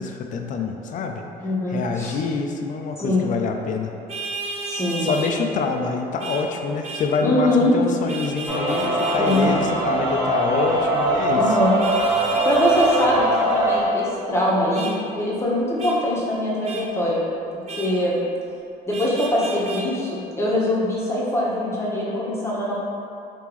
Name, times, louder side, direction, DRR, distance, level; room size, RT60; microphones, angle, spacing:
voice 1, 0.0-1.2 1.7-3.9 5.0-11.6, left 4 dB, 50° left, 4 dB, 0.4 m, -26 dB
voice 2, 1.4-2.2 3.0-3.3 4.6-5.1 7.2-7.7 9.2-9.5 11.3-11.8 12.4-17.2 17.5-18.2 18.9-22.8, left 1 dB, 15° left, -6 dB, 0.9 m, -22 dB
Vehicle horn car horn honking, 4.1-5.3 6.2-6.4 6.8-7.1 8.1-9.5 11.8-13.1 14.7-14.9 15.8-16.0 16.6-16.8 17.7-17.9 18.9-19.8, right 3 dB, 40° right, 0.6 m, -32 dB
sound 1, 8.5-13.8, right 1 dB, 10° right, 0.9 m, -22 dB
3.6 x 2.9 x 3.0 m, 2.5 s
cardioid pair, 110°, 17 cm